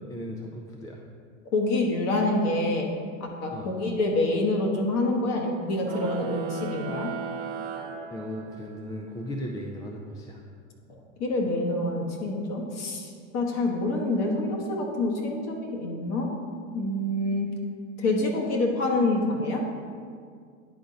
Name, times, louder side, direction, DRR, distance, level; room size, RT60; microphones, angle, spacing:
voice 1, 0.1-1.0 3.5-3.7 8.1-10.4, equal, 10° left, 0 dB, 0.4 m, -36 dB
voice 2, 1.5-2.9 3.2-7.1 11.2-16.3 16.7-17.5 18.0-19.6, left 2 dB, 45° left, 1 dB, 1.3 m, -26 dB
sound 1, 5.8-8.8, right 6 dB, 55° right, 1.2 m, -36 dB
10.0 x 3.7 x 4.0 m, 2.1 s
hypercardioid pair, 110°, 38 cm